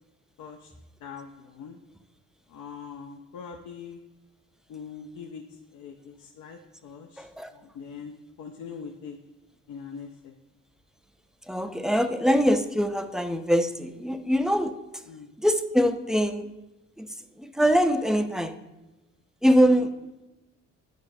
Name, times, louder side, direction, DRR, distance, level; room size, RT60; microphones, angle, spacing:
voice 1, 0.4-0.7 1.0-1.8 2.5-4.0 4.7-9.2 9.7-10.3 15.1-15.3 19.6-19.9, left 6 dB, 75° left, 3 dB, 0.5 m, -42 dB
voice 2, 7.2-7.5 11.4-15.0 15.4-16.5 17.0-18.6 19.4-20.0, equal, ahead, 8 dB, 0.3 m, -23 dB
9.2 x 4.7 x 2.6 m, 1.0 s
cardioid pair, 90°, 30 cm